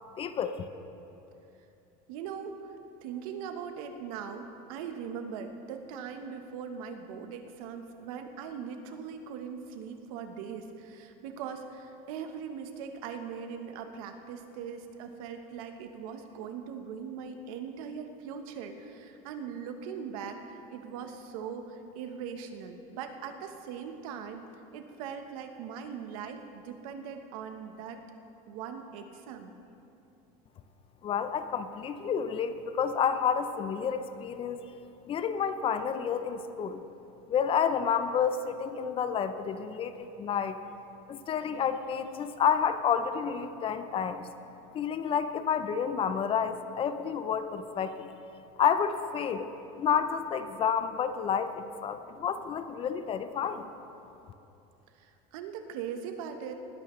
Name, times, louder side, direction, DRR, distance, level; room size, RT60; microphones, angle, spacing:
voice 1, 0.2-0.7 31.0-34.6 35.1-36.8 37.3-40.6 41.1-44.3 44.7-48.1 48.6-49.5 49.8-53.7, left 7 dB, 30° left, 11 dB, 0.5 m, -30 dB
voice 2, 2.1-2.7 3.0-24.4 24.7-28.0 28.5-29.5 55.0-56.5, right 7 dB, 80° right, 6 dB, 1.1 m, -40 dB
19.5 x 11.5 x 3.2 m, 2.9 s
cardioid pair, 140°, 18 cm